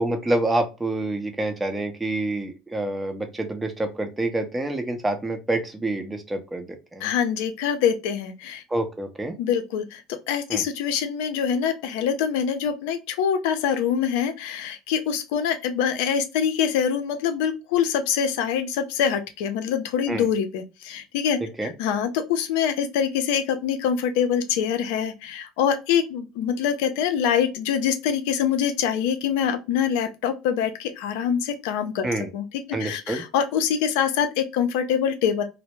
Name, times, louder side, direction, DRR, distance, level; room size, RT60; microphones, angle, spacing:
voice 1, 0.0-7.1 8.7-9.3 10.5-10.6 20.1-20.3 21.6-21.7 32.0-32.3 32.7-33.2, right 2 dB, 15° right, 0.7 m, -27 dB
voice 2, 7.0-8.6 9.4-32.0 32.3-32.5 32.8-35.4, left 8 dB, 75° left, 0.5 m, -24 dB
2.1 x 2.0 x 3.0 m
supercardioid pair, 90°, 0 cm